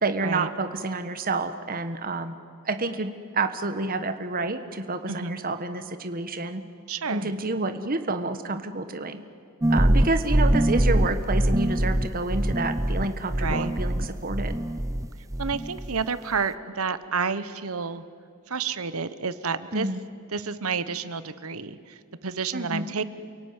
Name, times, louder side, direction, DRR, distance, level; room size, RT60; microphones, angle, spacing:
voice 1, 0.0-2.3 2.6-6.6 7.1-9.2 9.7-14.6 19.7-20.0 22.5-22.8, right 3 dB, 40° right, 9 dB, 1.3 m, -29 dB
voice 2, 6.9-7.3 13.4-13.7 15.4-18.0 18.5-19.9 20.3-23.0, right 5 dB, 75° right, 14 dB, 1.1 m, -30 dB
sound 1, 9.6-15.1 15.3-16.0, right 1 dB, 15° right, 0.7 m, -23 dB
29.0 x 17.5 x 9.7 m, 2.5 s
head